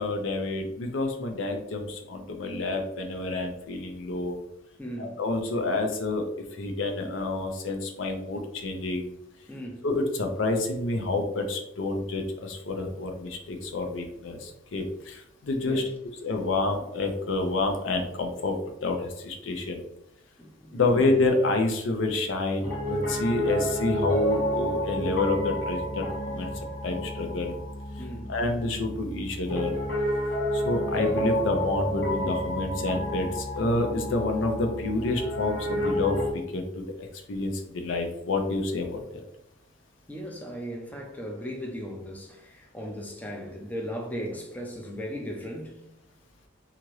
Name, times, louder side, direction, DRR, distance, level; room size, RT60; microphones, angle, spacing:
voice 1, 0.0-4.4 5.0-6.2 6.5-9.1 9.8-15.8 16.2-18.6 18.8-19.8 20.7-26.5 26.8-27.5 28.3-29.7 30.5-36.9 37.3-39.2, left 2 dB, 85° left, 0.5 m, -28 dB
voice 2, 4.8-5.2 9.5-9.9 15.6-15.8 20.4-21.0 28.0-28.3 40.1-45.8, equal, 10° left, 0.4 m, -37 dB
Piano, 22.6-36.3, equal, 70° left, 1.0 m, -30 dB
2.8 x 2.4 x 3.0 m
head